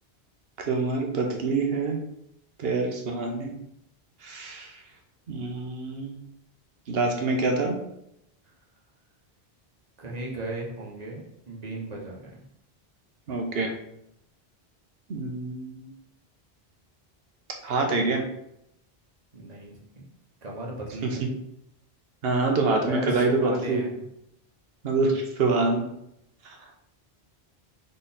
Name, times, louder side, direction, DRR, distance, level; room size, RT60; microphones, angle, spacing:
voice 1, 0.7-2.0 2.6-3.6 4.2-4.7 5.3-6.2 6.9-7.8 13.3-13.7 15.1-15.9 17.6-18.2 22.2-23.8 24.8-25.8 26.4-26.6, right 3 dB, 75° right, 2 dB, 1.1 m, -26 dB
voice 2, 10.0-11.2 11.5-12.4 19.3-19.8 20.4-21.3 22.9-24.1, right 2 dB, 40° right, -2 dB, 1.1 m, -36 dB
4.0 x 3.2 x 4.0 m, 0.79 s
omnidirectional pair, 1.0 m